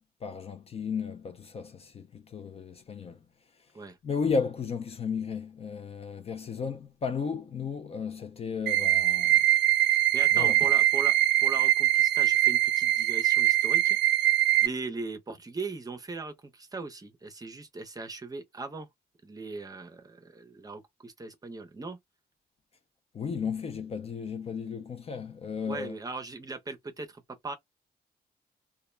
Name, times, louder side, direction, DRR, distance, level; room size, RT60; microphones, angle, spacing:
voice 1, 0.2-3.2 4.0-9.4 10.3-10.6 23.1-26.0, left 5 dB, 35° left, 0.4 m, -34 dB
sound 1, 8.7-14.7, right 14 dB, 90° right, 0.5 m, -23 dB
voice 2, 9.9-11.1 11.4-14.3 14.6-18.9 19.2-22.0 25.7-27.5, right 3 dB, 20° right, 0.6 m, -39 dB
2.2 x 2.1 x 3.1 m
cardioid pair, 135°, 17 cm